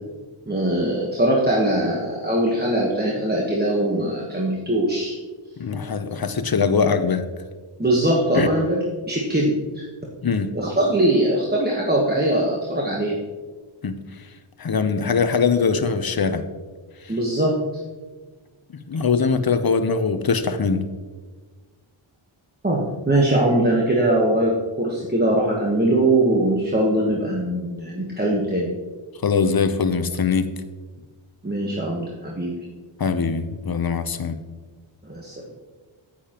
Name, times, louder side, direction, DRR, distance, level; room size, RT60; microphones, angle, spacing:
voice 1, 0.5-5.1 7.8-9.8 10.5-13.2 17.1-17.8 22.6-28.7 31.4-32.5 35.0-35.3, right 1 dB, 20° right, -3 dB, 1.2 m, -21 dB
voice 2, 5.6-7.2 8.3-8.5 10.2-10.5 13.8-14.0 14.6-16.4 17.0-17.1 18.9-20.9 29.2-30.5 33.0-34.4, left 5 dB, 45° left, 10 dB, 0.7 m, -22 dB
9.7 x 8.7 x 3.0 m, 1.4 s
wide cardioid pair, 75°, 50 cm